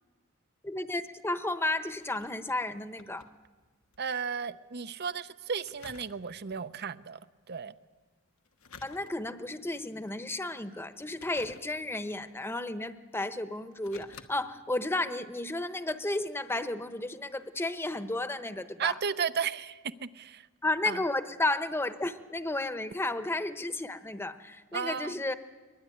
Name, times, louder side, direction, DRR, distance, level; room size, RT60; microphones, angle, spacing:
voice 1, 0.6-3.2 8.8-18.9 20.6-25.3, left 2 dB, 10° left, 10 dB, 0.9 m, -33 dB
sound 1, 1.3-4.1 4.4-4.5 5.6-6.6 8.4-9.5 10.0-10.4 11.1-12.1 12.9-13.0 13.6-14.3 14.8-14.9, left 5 dB, 85° left, 1.4 m, -53 dB
voice 2, 4.0-7.2 7.5-7.7 18.8-20.5 20.9-21.0 24.7-25.2, right 6 dB, 50° right, 14 dB, 0.7 m, -34 dB
22.5 x 21.0 x 9.2 m, 1.4 s
head